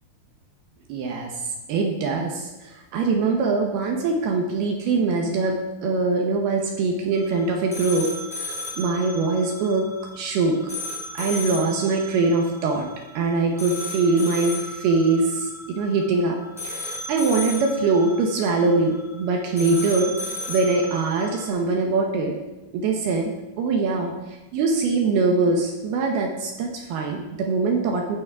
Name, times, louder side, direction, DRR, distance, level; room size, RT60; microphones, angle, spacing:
voice 1, 0.9-1.3 1.7-8.1 8.4-9.9 10.1-10.6 11.1-12.9 13.2-16.4 16.6-20.1 20.5-22.3 22.7-23.3 23.6-24.1 24.5-28.2, right 3 dB, 75° right, 1 dB, 2.9 m, -23 dB
sound 1, 7.1-21.5, left 1 dB, ahead, 1.0 m, -35 dB
14.5 x 6.3 x 4.7 m, 1.0 s
omnidirectional pair, 4.9 m